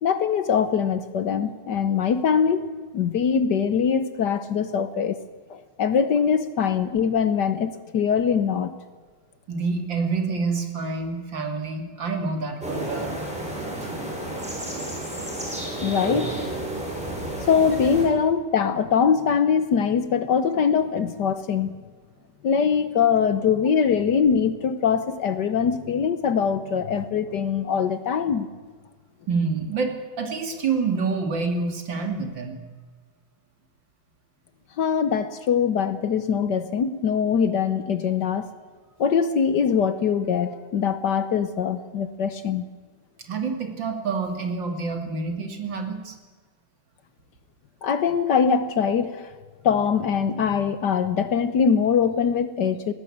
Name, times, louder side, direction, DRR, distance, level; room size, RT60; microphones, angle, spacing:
voice 1, 0.0-2.7 2.9-5.2 5.5-8.8 15.8-16.4 17.5-21.7 22.4-28.5 34.8-38.5 39.0-42.7 47.8-49.3 49.6-52.9, left 7 dB, 60° left, 12 dB, 1.5 m, -22 dB
voice 2, 9.5-13.2 13.8-13.9 29.3-32.6 43.2-46.2, right 4 dB, 65° right, 4 dB, 3.1 m, -27 dB
sound 1, 12.6-18.1, right 1 dB, 5° right, 6.1 m, -31 dB
20.0 x 18.5 x 8.6 m, 1.5 s
omnidirectional pair, 2.2 m